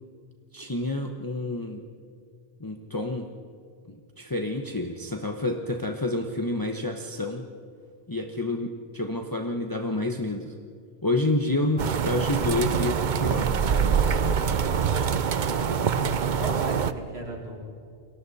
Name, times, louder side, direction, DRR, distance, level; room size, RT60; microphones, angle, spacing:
voice 1, 0.5-1.8 2.6-3.3 3.9-7.5 8.1-10.5 11.0-14.7, left 2 dB, 20° left, 3 dB, 1.0 m, -29 dB
sound 1, 11.8-16.9, right 7 dB, 50° right, 0.8 m, -24 dB
voice 2, 15.3-15.7 16.0-17.6, right 1 dB, 85° right, -2 dB, 4.6 m, -35 dB
29.0 x 22.5 x 4.2 m, 2.3 s
omnidirectional pair, 1.0 m